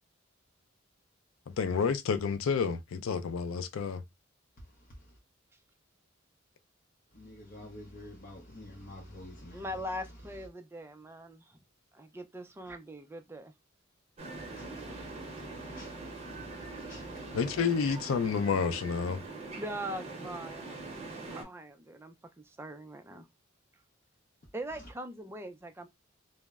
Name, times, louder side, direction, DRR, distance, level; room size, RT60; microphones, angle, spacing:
voice 1, 1.5-4.0 17.3-19.2, left 6 dB, 90° left, 0.4 m, -30 dB
voice 2, 4.6-5.2 7.1-10.5 14.3-17.6 24.7-24.9, left 1 dB, 45° left, 0.6 m, -49 dB
voice 3, 9.5-11.6 11.9-13.5 17.8-17.9 19.6-20.8 21.1-23.3 24.5-25.9, equal, 10° right, 0.3 m, -41 dB
sound 1, 14.2-21.4, right 3 dB, 35° right, 0.7 m, -43 dB
2.0 x 2.0 x 3.4 m
head